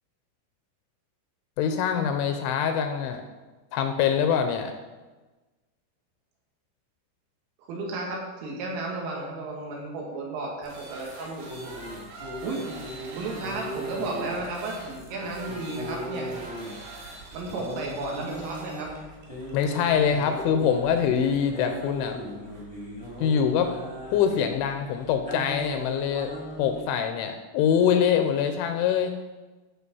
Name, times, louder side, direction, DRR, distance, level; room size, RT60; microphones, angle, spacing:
voice 1, 1.6-3.2 3.7-4.7 19.5-22.2 23.2-23.7 24.1-26.3 26.6-29.2, left 8 dB, 80° left, 7 dB, 2.9 m, -24 dB
voice 2, 7.7-11.5 12.4-12.6 13.2-16.3 17.3-18.9, right 2 dB, 80° right, -1 dB, 4.7 m, -33 dB
sound 1, 10.6-23.8, right 2 dB, 55° right, 4.2 m, -45 dB
sound 2, 11.5-26.8, right 1 dB, 20° left, 0.6 m, -39 dB
13.5 x 6.1 x 5.5 m, 1.2 s
omnidirectional pair, 5.9 m